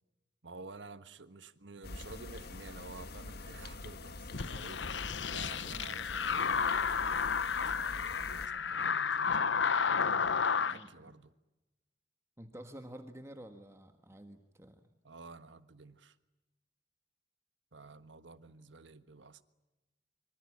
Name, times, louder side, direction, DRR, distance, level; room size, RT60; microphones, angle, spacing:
voice 1, 0.4-10.1 10.5-11.3 15.0-16.2 17.7-19.4, right 3 dB, 90° right, 1.4 m, -51 dB
sound 1, 1.8-8.5, left 2 dB, 60° left, 1.4 m, -46 dB
sound 2, 4.3-10.8, left 6 dB, 80° left, 0.9 m, -32 dB
voice 2, 10.7-11.1 12.4-14.8, right 1 dB, 15° right, 1.6 m, -50 dB
25.5 x 24.5 x 8.7 m
head